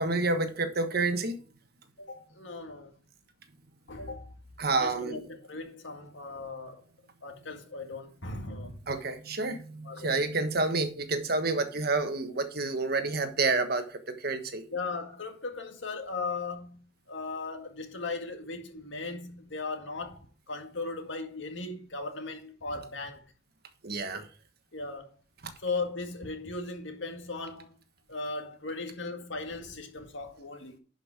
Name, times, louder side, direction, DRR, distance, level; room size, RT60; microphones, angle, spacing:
voice 1, 0.0-1.4 4.6-5.2 8.9-14.6 23.8-24.3 25.4-25.5, right 3 dB, 55° right, 1.3 m, -29 dB
voice 2, 2.0-2.9 3.9-4.3 4.8-6.8 7.2-8.8 9.8-10.1 14.7-20.2 20.5-23.3 24.7-25.2 25.6-27.8 28.1-30.8, left 3 dB, 75° left, 1.9 m, -37 dB
11.0 x 5.4 x 4.7 m
head